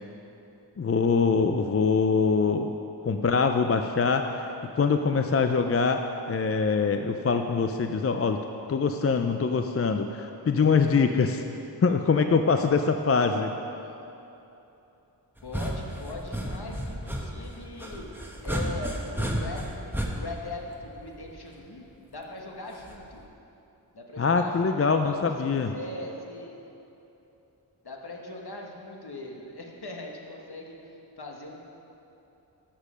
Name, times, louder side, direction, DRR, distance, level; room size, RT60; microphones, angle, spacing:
voice 1, 0.8-2.7 3.0-4.4 4.7-6.0 6.3-8.4 8.7-11.4 11.8-13.5 24.2-25.7, left 5 dB, 35° left, 6 dB, 0.4 m, -24 dB
voice 2, 13.7-14.0 15.4-23.2 23.9-26.5 27.8-31.6, left 2 dB, 55° left, 0 dB, 1.4 m, -40 dB
sound 1, 15.4-21.4 22.8-23.2, equal, 5° right, 1.0 m, -33 dB
13.0 x 5.1 x 5.6 m, 3.0 s
wide cardioid pair, 60°, 45 cm